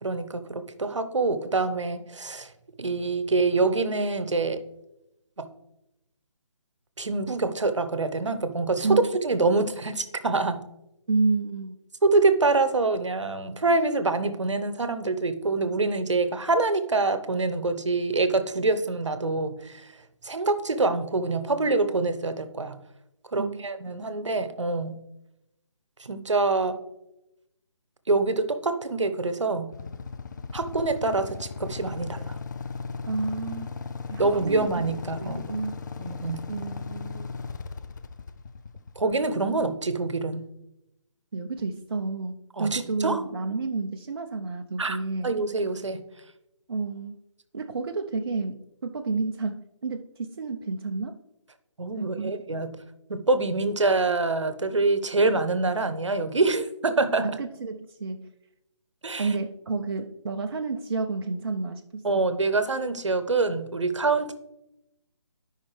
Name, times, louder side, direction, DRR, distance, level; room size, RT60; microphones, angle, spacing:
voice 1, 0.0-2.5 2.8-4.6 5.4-5.5 7.0-10.6 12.0-19.8 20.2-22.8 23.3-25.0 26.0-26.8 28.1-29.7 30.5-32.4 34.2-35.5 36.0-36.4 39.0-40.5 42.6-43.2 44.8-45.0 45.2-46.0 51.8-52.8 53.1-57.3 59.0-59.3 62.0-64.3, right 3 dB, 70° right, 10 dB, 0.9 m, -25 dB
voice 2, 11.1-11.8 23.3-23.6 33.1-33.7 34.1-34.7 35.2-35.8 36.5-37.3 41.3-45.4 46.7-47.2 47.5-51.2 52.0-52.4 57.2-58.3 59.2-62.3, right 3 dB, 50° right, 5 dB, 0.5 m, -30 dB
Motorcycle / Idling, 29.7-39.7, left 5 dB, 40° left, 0.4 m, -37 dB
12.5 x 5.5 x 3.2 m, 0.88 s
figure-of-eight pair, 150°, 16 cm